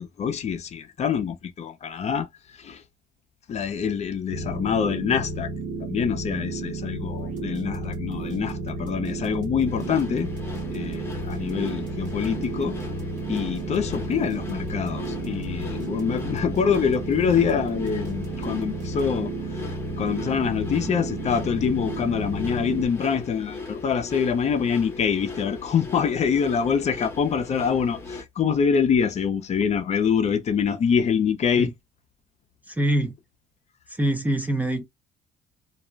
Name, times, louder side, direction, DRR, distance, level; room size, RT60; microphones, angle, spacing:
voice 1, 0.0-2.8 3.5-5.5 5.9-10.3 10.7-12.8 13.3-19.3 19.6-19.7 20.0-31.7, left 7 dB, 40° left, 0.6 m, -25 dB
sound 1, 4.3-22.9, right 2 dB, 80° right, 0.8 m, -32 dB
sound 2, 7.2-19.4, right 2 dB, 45° right, 1.3 m, -44 dB
sound 3, 9.6-28.2, left 3 dB, 15° left, 1.0 m, -39 dB
voice 2, 32.7-33.1 33.9-34.8, right 1 dB, 10° right, 0.5 m, -24 dB
2.4 x 2.1 x 3.2 m
cardioid pair, 110°, 17 cm